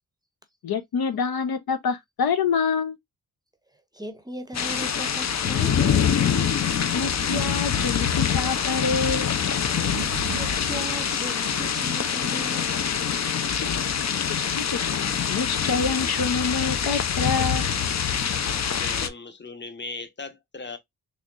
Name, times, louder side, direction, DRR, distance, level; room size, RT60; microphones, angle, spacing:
voice 1, 0.6-3.0 6.9-9.3 14.3-17.7, left 5 dB, 75° left, 0.8 m, -27 dB
voice 2, 3.9-6.1 10.3-12.8, equal, 10° right, 0.6 m, -37 dB
sound 1, 4.5-19.1, left 7 dB, 45° left, 0.6 m, -25 dB
sound 2, 9.7-14.5, right 7 dB, 55° right, 0.6 m, -41 dB
voice 3, 18.8-20.8, left 3 dB, 30° left, 0.9 m, -37 dB
4.2 x 3.1 x 2.5 m
wide cardioid pair, 110°, 36 cm